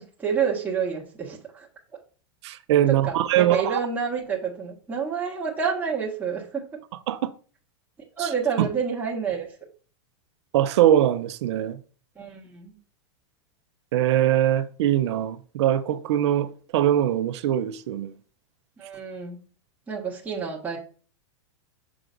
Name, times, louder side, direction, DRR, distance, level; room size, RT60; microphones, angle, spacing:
voice 1, 0.0-1.7 2.9-6.7 8.2-9.5 12.1-12.8 18.8-19.4 19.9-20.8, right 6 dB, 10° right, 1.4 m, -29 dB
voice 2, 2.4-3.8 7.1-7.3 8.2-8.3 8.6-8.7 10.5-11.8 13.9-18.1, right 12 dB, 70° right, 0.6 m, -22 dB
6.2 x 5.9 x 2.6 m
supercardioid pair, 140°, 15 cm